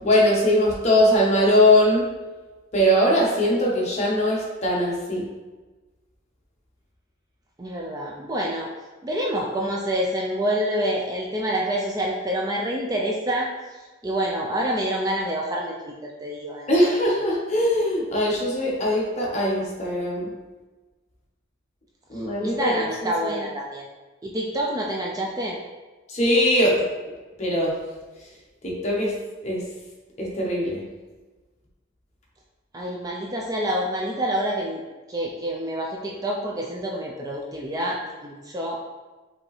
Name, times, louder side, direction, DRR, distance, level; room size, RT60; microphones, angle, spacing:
voice 1, 0.0-2.0 2.7-5.2 16.7-20.3 22.1-23.4 26.1-26.8 27.4-27.7 28.6-29.1 29.4-29.6 30.2-30.8, left 1 dB, 35° left, -3 dB, 0.9 m, -21 dB
voice 2, 7.6-8.7 9.0-17.0 22.4-23.9 24.2-25.6 32.7-34.8 35.1-38.8, equal, 20° right, -2 dB, 0.3 m, -27 dB
5.1 x 2.8 x 3.1 m, 1.2 s
head